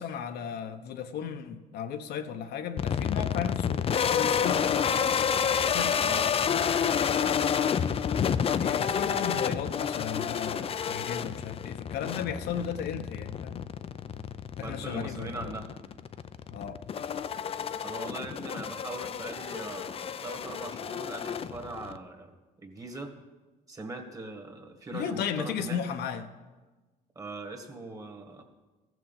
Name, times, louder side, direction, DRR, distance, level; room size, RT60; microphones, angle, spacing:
voice 1, 0.0-5.3 5.6-6.0 8.6-13.7 14.6-15.6 16.5-16.8 24.9-26.2, left 8 dB, 70° left, 7 dB, 0.9 m, -35 dB
sound 1, 2.8-22.0, left 7 dB, 35° left, 0.5 m, -29 dB
voice 2, 6.0-6.3 9.0-9.3 14.6-15.7 17.8-22.3 22.6-23.1 23.7-25.8 27.1-28.4, right 2 dB, 20° right, 4 dB, 1.7 m, -40 dB
15.0 x 6.2 x 7.3 m, 1.2 s
cardioid pair, 110°, 17 cm